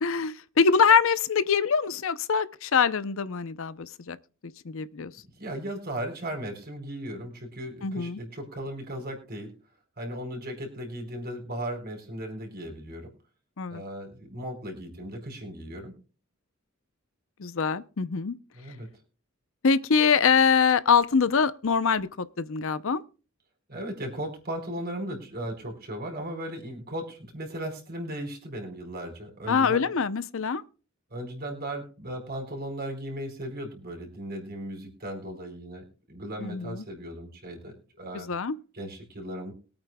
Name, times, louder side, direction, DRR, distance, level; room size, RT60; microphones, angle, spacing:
voice 1, 0.0-4.2 4.6-5.1 7.8-8.2 13.6-13.8 17.4-18.4 19.6-23.0 29.5-30.6 36.4-36.8 38.1-38.5, left 6 dB, 65° left, 0.6 m, -24 dB
voice 2, 5.4-9.5 10.0-13.1 13.7-15.9 18.5-18.9 23.7-29.8 31.1-38.3 38.7-39.5, right 1 dB, 45° right, 4.6 m, -36 dB
22.5 x 8.9 x 2.3 m
head